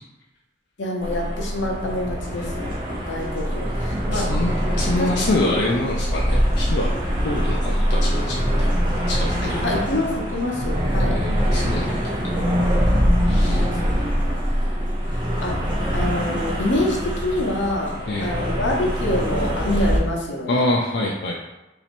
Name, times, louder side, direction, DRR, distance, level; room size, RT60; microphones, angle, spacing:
voice 1, 0.8-2.8 3.1-4.3 5.0-5.1 9.6-11.2 13.5-14.0 15.4-15.6 15.9-18.0 18.2-20.6, left 1 dB, 90° left, -1 dB, 0.9 m, -26 dB
sound 1, 1.0-20.0, equal, 25° right, 0.7 m, -23 dB
voice 2, 2.3-2.6 4.1-6.9 7.2-8.7 9.1-9.8 11.0-12.2 13.3-13.7 18.1-18.3 20.5-21.3, left 2 dB, 65° left, -2 dB, 0.4 m, -26 dB
3.0 x 2.8 x 4.3 m, 0.99 s
head